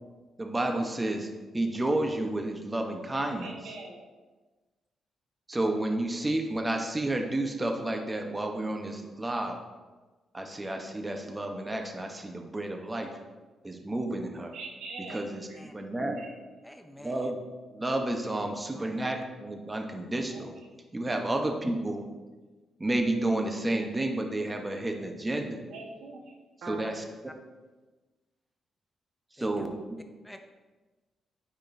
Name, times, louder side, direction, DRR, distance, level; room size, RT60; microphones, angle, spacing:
voice 1, 0.4-1.3 1.5-3.5 5.5-9.6 10.3-13.1 13.6-14.5 15.1-15.5 15.7-16.2 17.0-17.4 17.7-20.5 20.9-22.1 22.8-25.6 26.7-27.0 29.3-29.8, right 1 dB, 20° right, 3 dB, 0.9 m, -31 dB
voice 2, 3.4-4.0 14.5-15.6 16.2-16.3 20.3-20.5 25.7-26.2 26.6-26.9, right 3 dB, 85° right, 0 dB, 1.2 m, -42 dB
voice 3, 16.6-17.3 18.7-19.2 26.7-26.9 29.4-29.7 30.2-30.4, left 1 dB, 5° left, 6 dB, 0.5 m, -48 dB
8.8 x 5.2 x 2.6 m, 1.3 s
cardioid pair, 85°, 0 cm